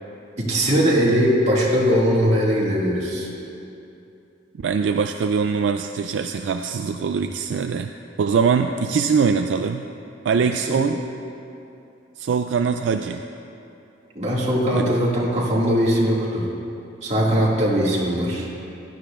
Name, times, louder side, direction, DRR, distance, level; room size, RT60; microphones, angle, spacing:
voice 1, 0.4-3.3 10.7-10.8 14.2-16.5 17.0-18.5, equal, 40° right, -5 dB, 2.0 m, -20 dB
voice 2, 4.6-7.9 8.2-9.8 10.2-11.0 12.2-13.2 14.7-14.9, right 5 dB, 70° right, 6 dB, 0.3 m, -22 dB
15.5 x 12.0 x 2.4 m, 2.7 s
head